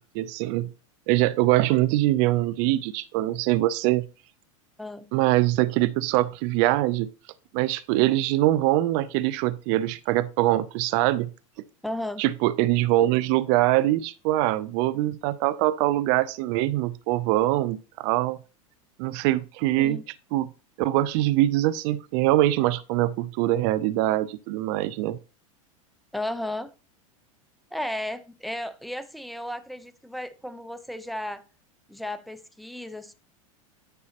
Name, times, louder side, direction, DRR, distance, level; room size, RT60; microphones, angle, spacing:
voice 1, 0.1-0.7 1.1-4.1 5.1-7.1 7.5-11.3 12.2-18.4 19.0-20.0 20.3-20.5 20.8-25.2, right 16 dB, 55° right, 0.5 m, -23 dB
voice 2, 11.8-12.2 19.8-20.0 26.1-26.7 27.7-31.4 31.9-33.1, left 1 dB, ahead, 0.7 m, -34 dB
9.8 x 6.1 x 2.8 m
hypercardioid pair, 105°, 18 cm